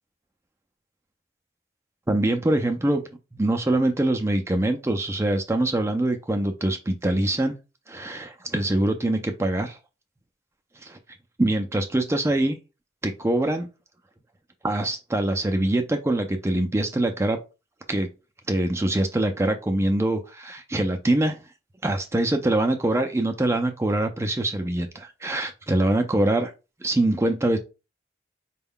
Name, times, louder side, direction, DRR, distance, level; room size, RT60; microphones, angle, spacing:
voice 1, 2.1-3.0 3.3-7.6 7.9-9.8 10.8-11.0 11.4-12.6 13.0-13.7 14.6-17.4 17.9-18.1 18.5-21.4 21.8-26.5 26.8-27.6, right 1 dB, 15° right, 5 dB, 0.4 m, -24 dB
4.2 x 2.2 x 3.6 m, 0.29 s
head